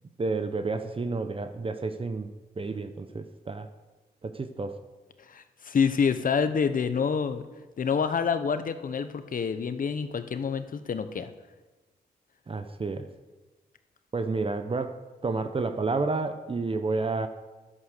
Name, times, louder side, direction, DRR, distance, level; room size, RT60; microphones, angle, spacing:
voice 1, 0.2-2.3 2.6-3.7 4.2-4.8 12.5-13.1 14.1-17.3, right 3 dB, 35° right, 8 dB, 0.9 m, -30 dB
voice 2, 5.2-7.4 7.8-11.3, left 6 dB, 60° left, 10 dB, 1.0 m, -27 dB
11.5 x 11.0 x 6.7 m, 1.2 s
cardioid pair, 80°, 16 cm